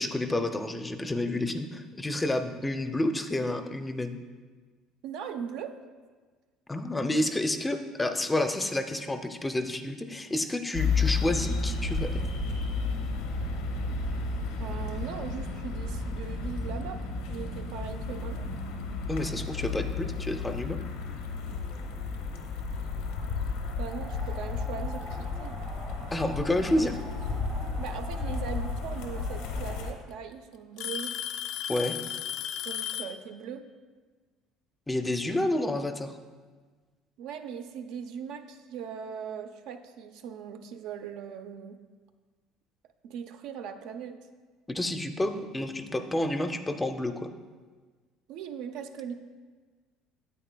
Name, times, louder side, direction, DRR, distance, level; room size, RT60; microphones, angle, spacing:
voice 1, 0.0-4.2 6.7-12.1 19.1-20.8 26.1-27.0 31.7-32.0 34.9-36.2 44.7-47.3, left 1 dB, 10° left, 8 dB, 0.5 m, -29 dB
voice 2, 5.0-5.8 14.6-18.5 23.8-25.6 27.8-31.2 32.6-33.7 37.2-41.8 43.0-44.2 48.3-49.1, right 7 dB, 75° right, 7 dB, 0.5 m, -39 dB
sound 1, 10.7-29.9, left 4 dB, 85° left, 0.9 m, -32 dB
Alarm / Tick-tock, 19.2-19.5 20.4-20.5 21.2-21.3 23.0-23.1 24.4-24.5 25.7-26.1 27.9-28.0 29.2-29.3 29.7-30.1 30.8-33.2, left 10 dB, 70° left, 0.3 m, -35 dB
sound 2, 23.8-30.0, right 3 dB, 45° right, 1.1 m, -46 dB
9.0 x 8.2 x 2.2 m, 1.4 s
cardioid pair, 110°, 0 cm